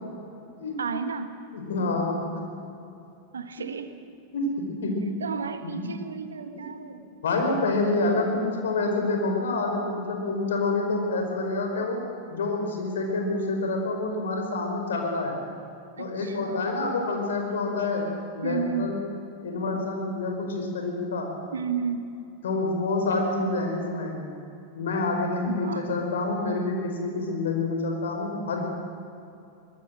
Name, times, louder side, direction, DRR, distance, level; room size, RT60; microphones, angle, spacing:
voice 1, 0.8-1.3 3.3-3.9 5.2-7.0 16.0-16.7 18.4-19.0 21.5-22.0 25.4-25.9, right 6 dB, 70° right, 9 dB, 1.6 m, -32 dB
voice 2, 1.5-2.3 4.3-5.0 5.6-5.8 6.5-6.6 7.2-12.0 12.3-15.4 16.0-18.1 18.3-19.0 19.4-21.3 22.4-24.2 24.7-28.6, left 3 dB, 65° left, 2 dB, 5.1 m, -27 dB
23.5 x 20.0 x 7.7 m, 2.7 s
figure-of-eight pair, 90°, 0 cm